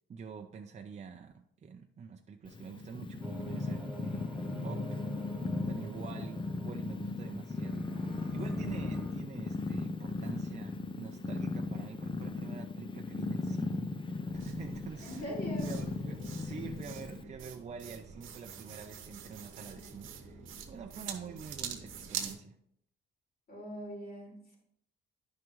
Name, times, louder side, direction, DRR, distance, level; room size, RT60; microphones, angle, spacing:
voice 1, 0.1-4.2 4.6-5.0 5.7-8.0 8.3-15.3 15.6-22.6, right 6 dB, 35° right, 4 dB, 0.6 m, -46 dB
Purr, 2.5-17.2, left 3 dB, 25° left, 0.6 m, -37 dB
sound 1, 3.2-9.1, right 1 dB, 5° right, 1.3 m, -46 dB
voice 2, 7.9-8.7 15.0-15.7 23.5-24.6, equal, 50° left, -3 dB, 3.7 m, -43 dB
sound 2, 14.3-22.4, right 7 dB, 90° right, 1.1 m, -45 dB
10.5 x 6.0 x 3.1 m, 0.72 s
cardioid pair, 90°, 20 cm